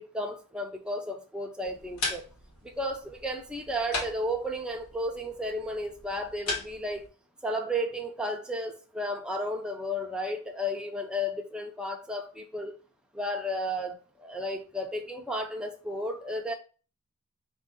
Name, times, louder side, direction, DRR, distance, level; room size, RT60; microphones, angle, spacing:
voice 1, 0.0-2.2 2.6-7.0 7.4-12.7 13.1-16.5, equal, 5° right, 0.5 m, -33 dB
sound 1, 1.6-7.1, left 3 dB, 75° left, 1.2 m, -38 dB
4.6 x 2.6 x 3.7 m
head